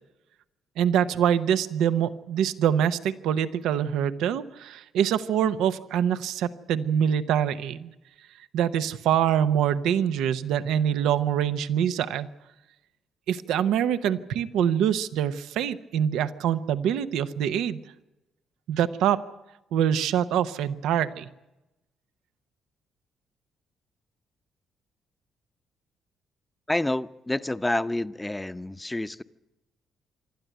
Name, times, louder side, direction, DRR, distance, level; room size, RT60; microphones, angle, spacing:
voice 1, 0.8-7.9 8.5-12.3 13.3-17.8 18.7-19.2 19.7-21.3, right 9 dB, 90° right, 0.8 m, -25 dB
voice 2, 26.7-29.2, left 1 dB, 10° left, 0.7 m, -28 dB
26.0 x 12.5 x 9.2 m
cardioid pair, 90°, 0 cm